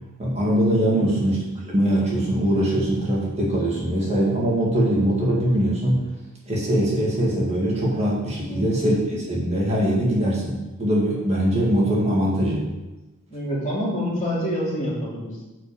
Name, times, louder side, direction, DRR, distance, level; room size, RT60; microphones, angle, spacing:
voice 1, 0.2-1.4 1.6-6.0 6.5-12.7, right 1 dB, 30° right, -5 dB, 2.1 m, -22 dB
voice 2, 8.4-8.8 13.3-15.4, equal, 35° left, -6 dB, 2.8 m, -27 dB
8.2 x 5.1 x 6.9 m, 1.1 s
head